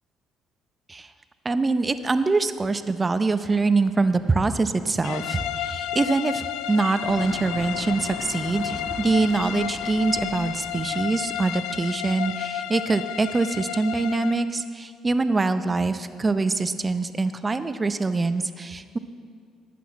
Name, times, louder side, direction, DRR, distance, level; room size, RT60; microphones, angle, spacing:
voice 1, 1.4-19.0, right 3 dB, 20° right, 11 dB, 0.6 m, -24 dB
sound 1, 5.0-14.5, left 10 dB, 85° left, 0.4 m, -32 dB
sound 2, 7.1-11.6, left 2 dB, 50° left, 2.1 m, -40 dB
12.0 x 8.5 x 7.1 m, 2.2 s
cardioid pair, 105°, 0 cm